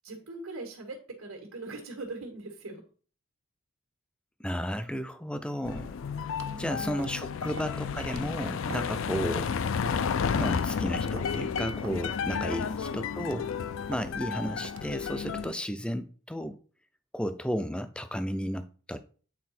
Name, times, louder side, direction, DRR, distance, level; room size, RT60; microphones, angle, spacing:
voice 1, 0.0-2.8 6.4-7.5 9.0-9.4 12.5-12.8, right 2 dB, 80° right, 1.7 m, -42 dB
voice 2, 4.4-6.0 6.6-9.5 10.4-13.5 13.9-16.6 17.1-19.0, equal, 5° left, 0.4 m, -33 dB
sound 1, 5.6-15.5, left 6 dB, 65° left, 0.4 m, -32 dB
sound 2, 6.4-6.6 7.0-7.2 7.6-7.8 8.1-8.2 8.7-8.9 9.2-9.4 9.9-10.1 10.5-10.7 11.2-11.3 11.8-12.0 12.5-12.7 13.2-13.4 13.9-14.1 14.6-14.9, right 3 dB, 60° right, 0.6 m, -44 dB
8.5 x 4.1 x 4.3 m
head